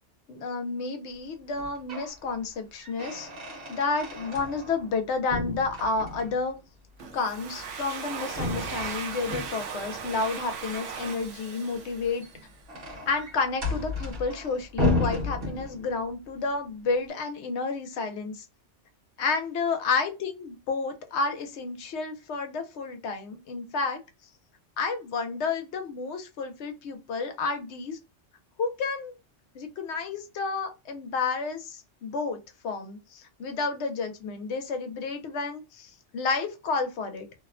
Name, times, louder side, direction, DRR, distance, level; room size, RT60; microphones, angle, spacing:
voice 1, 0.3-3.3 3.7-6.6 7.1-12.3 13.1-18.4 19.2-24.0 24.8-28.0 28.6-29.2 29.5-37.3, left 4 dB, 70° left, 0.9 m, -31 dB
sound 1, 1.5-2.2 2.5-5.0 5.3-6.5 8.3-9.9 11.9-16.1, left 2 dB, 55° right, 1.1 m, -33 dB
Domestic sounds home sounds, 7.0-12.6, right 6 dB, 85° right, 1.0 m, -38 dB
2.6 x 2.1 x 2.4 m
omnidirectional pair, 1.2 m